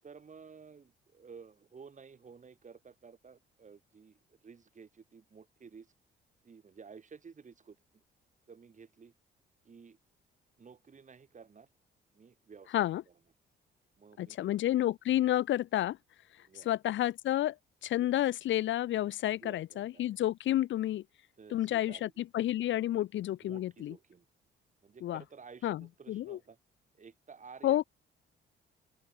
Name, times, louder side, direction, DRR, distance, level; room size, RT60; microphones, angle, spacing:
voice 1, 0.0-5.9 6.4-8.0 8.5-9.1 9.6-10.0 10.6-11.7 12.1-13.2 14.0-14.5 16.4-16.7 19.4-20.2 21.4-22.1 23.4-24.3 24.8-26.6 26.9-27.9, right 5 dB, 40° right, 6.7 m, -53 dB
voice 2, 14.2-16.0 16.6-17.6 17.8-21.0 21.5-22.1 22.3-23.9 25.0-25.2 25.6-26.4 27.6-27.8, left 13 dB, 70° left, 0.9 m, -30 dB
open air
cardioid pair, 90°, 20 cm